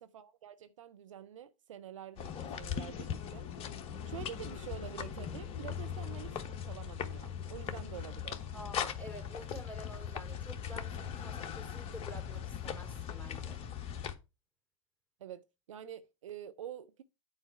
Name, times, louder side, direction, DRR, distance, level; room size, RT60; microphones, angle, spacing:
voice 1, 0.0-3.5 4.1-8.5 15.2-17.0, right 10 dB, 65° right, 0.6 m, -47 dB
sound 1, 2.2-14.1, left 8 dB, 35° left, 1.1 m, -40 dB
voice 2, 8.5-13.7, equal, 10° left, 3.1 m, -49 dB
9.7 x 4.6 x 4.4 m
figure-of-eight pair, 90°, 17 cm